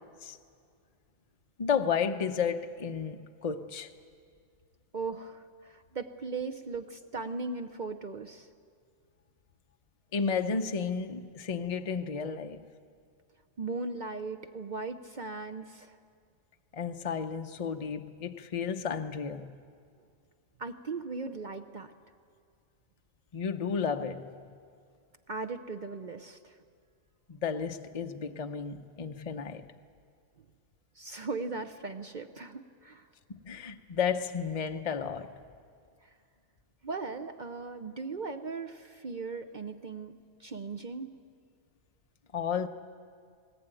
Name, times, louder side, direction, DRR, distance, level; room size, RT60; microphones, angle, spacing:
voice 1, 1.6-3.9 10.1-12.7 16.7-19.6 23.3-24.4 27.3-29.7 33.3-35.3 42.3-42.7, left 6 dB, 40° left, 0.6 m, -32 dB
voice 2, 4.9-8.5 13.6-16.0 20.6-21.9 25.3-26.6 31.0-33.1 36.0-36.1 36.8-40.1 40.4-41.2, right 4 dB, 45° right, 0.6 m, -38 dB
20.0 x 18.5 x 9.0 m
omnidirectional pair, 1.5 m